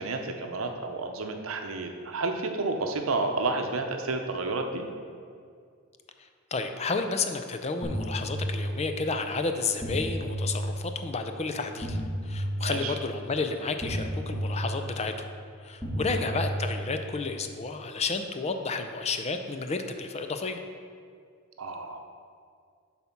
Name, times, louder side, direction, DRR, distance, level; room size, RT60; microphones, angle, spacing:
voice 1, 0.0-4.9 12.6-13.0 16.1-16.3 21.6-22.0, right 3 dB, 75° right, 4 dB, 0.7 m, -31 dB
voice 2, 6.5-12.0 12.2-15.3 15.6-20.6, left 4 dB, 30° left, 7 dB, 0.4 m, -31 dB
sound 1, 7.8-9.0 9.8-11.0 11.8-13.0 13.8-15.0 15.8-17.0, equal, 10° left, 1.5 m, -32 dB
8.1 x 4.2 x 5.8 m, 2.2 s
head